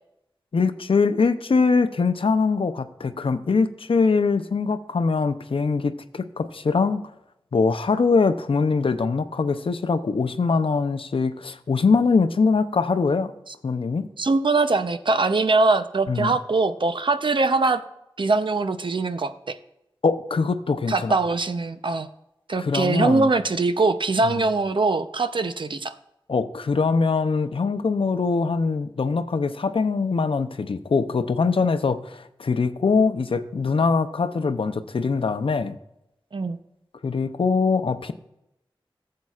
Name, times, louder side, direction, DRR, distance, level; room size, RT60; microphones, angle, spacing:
voice 1, 0.5-7.1 7.5-13.3 13.6-14.1 16.1-16.3 20.0-21.2 22.6-23.3 24.2-24.5 26.3-35.8 37.0-38.1, left 4 dB, 80° left, 10 dB, 0.6 m, -22 dB
voice 2, 14.2-17.8 18.2-19.5 20.9-22.1 22.5-25.9 36.3-36.6, right 3 dB, 65° right, 10 dB, 0.6 m, -22 dB
15.0 x 7.6 x 2.4 m, 0.85 s
wide cardioid pair, 65°, 9 cm